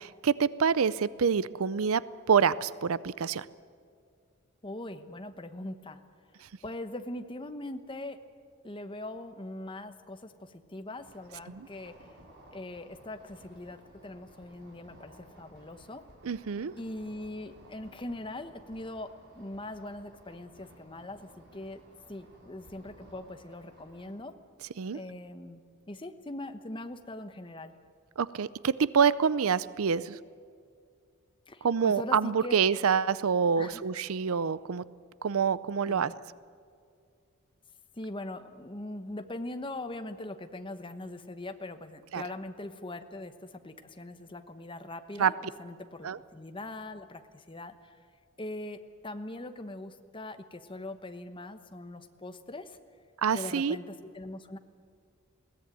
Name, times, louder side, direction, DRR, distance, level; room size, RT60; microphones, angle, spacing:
voice 1, 0.0-3.5 11.5-11.7 16.2-16.7 24.8-25.0 28.2-30.2 31.6-34.8 35.2-36.1 42.1-42.2 45.2-45.3 46.0-46.2 53.2-53.8, right 6 dB, 70° right, 18 dB, 0.5 m, -27 dB
voice 2, 4.6-6.0 6.6-8.2 8.6-11.9 12.5-16.0 16.8-21.8 22.1-24.3 24.9-25.6 25.9-27.7 31.5-32.6 33.6-33.8 35.9-36.2 38.0-47.9 48.4-52.8 53.3-54.6, left 1 dB, 25° left, 9 dB, 1.1 m, -41 dB
sound 1, 11.0-24.1, right 1 dB, 50° right, 5.3 m, -56 dB
21.0 x 17.0 x 9.2 m, 2.2 s
head